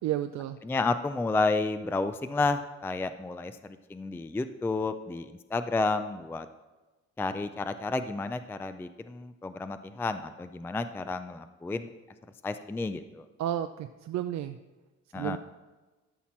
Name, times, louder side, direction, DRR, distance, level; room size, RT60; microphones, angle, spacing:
voice 1, 0.0-0.6 13.4-14.6 15.1-15.4, right 11 dB, 65° right, 9 dB, 0.5 m, -32 dB
voice 2, 0.6-6.5 7.2-11.9 12.4-13.2 15.1-15.4, left 3 dB, 10° left, 10 dB, 0.3 m, -31 dB
12.5 x 5.8 x 4.4 m, 1.2 s
cardioid pair, 90°, 30 cm